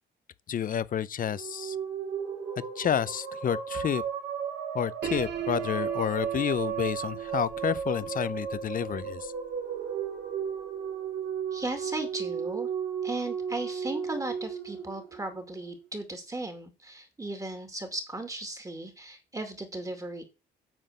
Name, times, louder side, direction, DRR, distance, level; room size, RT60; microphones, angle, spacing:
voice 1, 0.5-1.8 2.8-4.0 4.7-9.3, left 9 dB, 45° left, 0.6 m, -30 dB
sound 1, 1.3-15.7, right 7 dB, 80° right, 2.7 m, -35 dB
Piano, 5.0-10.9, right 10 dB, 60° right, 2.3 m, -40 dB
voice 2, 11.5-12.7 13.0-20.2, right 2 dB, 15° right, 2.3 m, -36 dB
8.9 x 4.0 x 6.6 m
cardioid pair, 90°, 20 cm